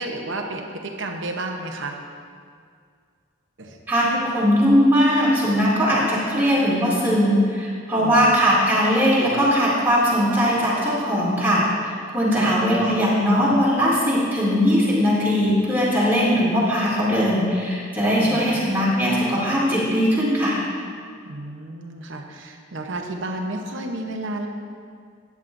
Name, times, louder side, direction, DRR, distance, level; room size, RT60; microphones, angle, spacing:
voice 1, 0.0-2.0 3.6-3.8 8.0-8.3 12.3-12.6 18.2-18.8 21.3-24.5, right 2 dB, 65° right, 2 dB, 0.9 m, -32 dB
voice 2, 3.9-20.6, equal, 10° right, -8 dB, 2.5 m, -20 dB
13.5 x 9.5 x 2.6 m, 2.2 s
head